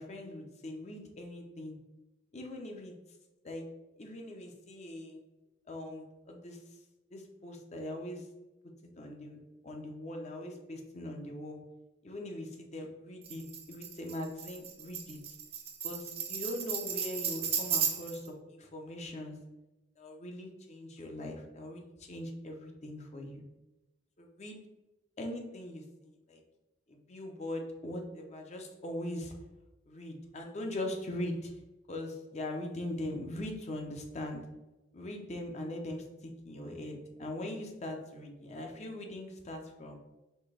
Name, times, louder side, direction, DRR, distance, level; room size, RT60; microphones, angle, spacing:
voice 1, 0.0-1.8 2.3-2.9 3.4-3.6 4.0-5.2 5.7-6.6 7.1-8.2 8.8-11.6 12.0-15.2 15.8-19.4 20.0-23.4 24.2-24.6 25.2-26.4 26.9-29.3 29.9-31.5 31.9-34.4 34.9-40.0, left 1 dB, 40° left, 2 dB, 0.6 m, -41 dB
Tambourine, 13.2-18.3, right 7 dB, 35° right, 0.6 m, -35 dB
4.3 x 3.3 x 3.3 m, 1.0 s
head